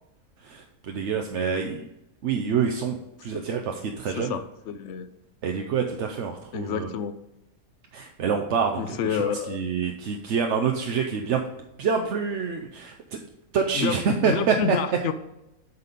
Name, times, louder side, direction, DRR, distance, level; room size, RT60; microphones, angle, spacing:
voice 1, 0.4-1.8 2.2-4.4 5.4-6.9 7.9-11.4 11.8-13.2 13.5-14.8, right 6 dB, 60° right, 3 dB, 0.9 m, -27 dB
voice 2, 4.2-5.1 6.5-7.1 8.8-9.7 13.7-15.1, left 8 dB, 60° left, 11 dB, 0.8 m, -29 dB
8.2 x 4.1 x 5.1 m, 0.90 s
omnidirectional pair, 1.6 m